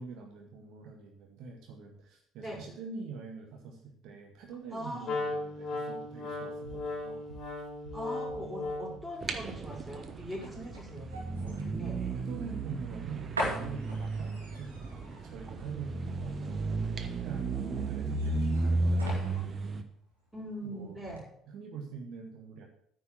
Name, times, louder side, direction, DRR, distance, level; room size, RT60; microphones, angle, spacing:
voice 1, 0.0-7.3 11.4-11.7 12.1-19.4 20.6-21.0 21.5-22.6, right 5 dB, 55° right, 1 dB, 1.8 m, -45 dB
voice 2, 4.7-5.1 7.9-12.0 20.3-21.2, equal, ahead, -2 dB, 4.3 m, -41 dB
Wind instrument woodwind instrument, 5.0-9.1, left 2 dB, 40° left, 2.9 m, -36 dB
sound 1, 6.5-20.6 21.0-21.2, equal, 85° right, 2.3 m, -43 dB
sound 2, 9.2-19.8, right 3 dB, 35° right, 1.1 m, -34 dB
9.6 x 5.5 x 7.3 m, 0.66 s
figure-of-eight pair, 55°, 0 cm